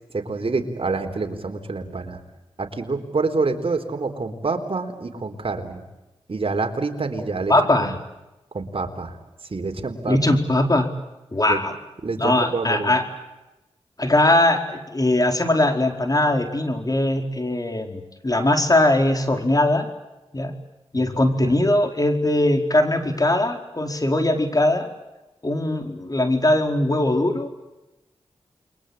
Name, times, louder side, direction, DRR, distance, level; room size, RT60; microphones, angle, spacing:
voice 1, 0.1-2.2 2.6-5.8 6.3-7.5 7.8-8.0 8.5-9.1 9.5-10.2 11.5-11.6 12.0-12.9 20.9-21.5, right 3 dB, 60° right, 5 dB, 4.1 m, -27 dB
voice 2, 7.5-8.0 10.1-10.9 11.3-11.7 12.2-13.0 14.0-19.9 20.3-20.5 20.9-24.9 25.4-27.5, left 1 dB, 35° left, 5 dB, 4.7 m, -20 dB
29.0 x 23.0 x 8.7 m, 1.0 s
cardioid pair, 45°, 11 cm